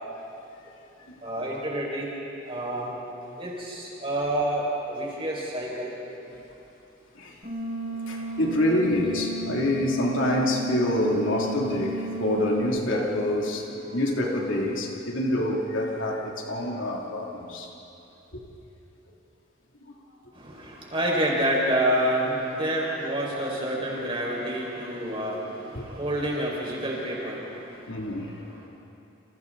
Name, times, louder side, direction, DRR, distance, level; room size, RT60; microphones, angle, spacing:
voice 1, 1.2-2.1 2.5-3.0 3.4-5.9 20.4-27.8, right 1 dB, 25° right, -3 dB, 5.4 m, -28 dB
sound 1, 7.4-12.6, right 1 dB, 45° right, 5.5 m, -34 dB
voice 2, 8.1-17.7 18.3-18.4 19.8-19.9 25.7-25.9 27.9-28.3, left 1 dB, 75° left, -1 dB, 3.0 m, -26 dB
30.0 x 28.0 x 4.1 m, 2.9 s
head